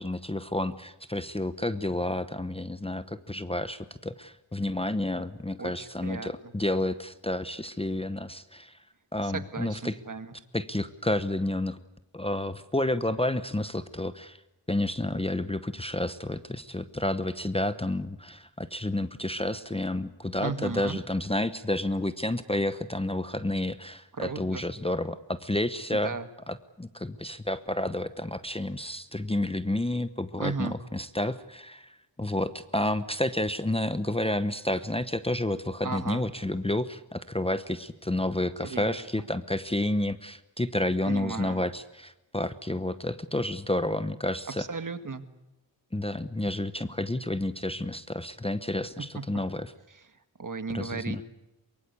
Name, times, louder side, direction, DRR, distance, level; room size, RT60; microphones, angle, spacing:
voice 1, 0.0-8.8 9.1-10.0 10.5-11.8 12.1-14.4 14.7-26.1 26.5-44.6 45.9-49.7 50.7-51.2, left 1 dB, 15° left, 11 dB, 0.9 m, -30 dB
voice 2, 5.6-6.5 9.2-10.3 20.4-21.0 24.1-24.6 26.0-26.3 30.4-30.8 35.8-36.2 38.6-39.0 41.0-41.6 44.6-45.2 49.1-49.2 49.9-50.1 50.4-51.2, right 4 dB, 45° right, 10 dB, 1.8 m, -35 dB
24.0 x 22.5 x 8.3 m, 0.95 s
wide cardioid pair, 100°, 43 cm